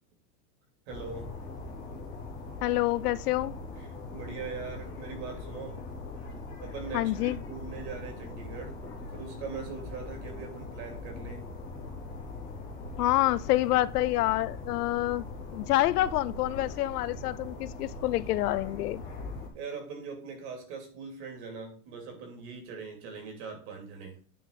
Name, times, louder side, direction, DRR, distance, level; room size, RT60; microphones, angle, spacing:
sound 1, 0.9-19.5, left 3 dB, 10° left, 0.4 m, -41 dB
voice 1, 0.9-1.4 3.8-3.9 4.1-5.8 6.6-11.5 19.5-24.2, right 5 dB, 40° right, 2.7 m, -41 dB
voice 2, 2.6-3.5 6.9-7.4 13.0-15.3 15.5-19.0, left 16 dB, 70° left, 0.5 m, -27 dB
9.3 x 3.8 x 5.3 m
supercardioid pair, 170°, 48 cm